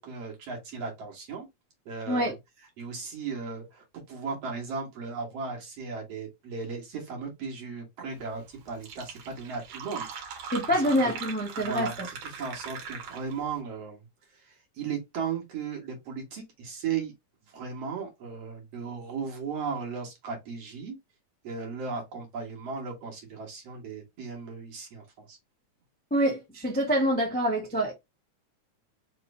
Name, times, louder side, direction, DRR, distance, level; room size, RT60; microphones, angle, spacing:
voice 1, 0.0-1.5 1.9-2.4 2.8-10.8 11.6-14.0 14.3-17.1 17.5-21.0 21.4-25.4, right 5 dB, 55° right, 2.5 m, -36 dB
Fill (with liquid), 8.4-8.5 8.7-13.5, right 6 dB, 75° right, 2.5 m, -40 dB
voice 2, 10.5-11.9 26.1-27.9, equal, 10° left, 0.5 m, -26 dB
5.2 x 3.0 x 3.3 m
omnidirectional pair, 3.5 m